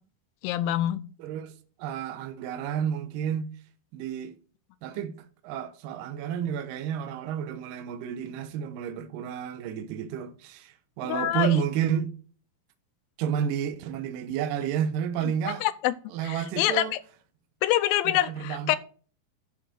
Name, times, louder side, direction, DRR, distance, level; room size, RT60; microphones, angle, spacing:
voice 1, 0.4-1.0 11.0-11.6 15.6-16.0 16.3-16.9 17.6-18.8, left 13 dB, 85° left, 2.4 m, -25 dB
voice 2, 1.2-1.5 1.8-3.5 3.9-4.4 4.8-12.1 13.2-15.7 16.1-16.9 18.1-18.8, right 9 dB, 75° right, 2.3 m, -31 dB
11.5 x 3.8 x 6.6 m
omnidirectional pair, 4.1 m